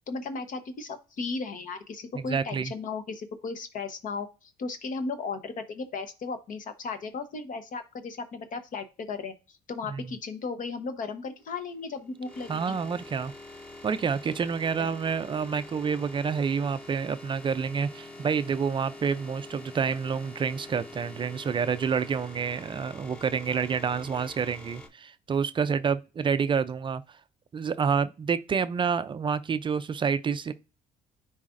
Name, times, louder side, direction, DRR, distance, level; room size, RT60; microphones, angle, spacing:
voice 1, 0.0-12.8 14.8-14.9, left 4 dB, 50° left, 1.0 m, -36 dB
voice 2, 2.3-2.7 9.9-10.0 12.5-13.3 13.8-27.0 27.5-30.5, right 6 dB, 30° right, 0.4 m, -28 dB
sound 1, 11.4-24.9, left 1 dB, 10° left, 3.6 m, -46 dB
9.8 x 4.0 x 2.5 m
cardioid pair, 110°, 17 cm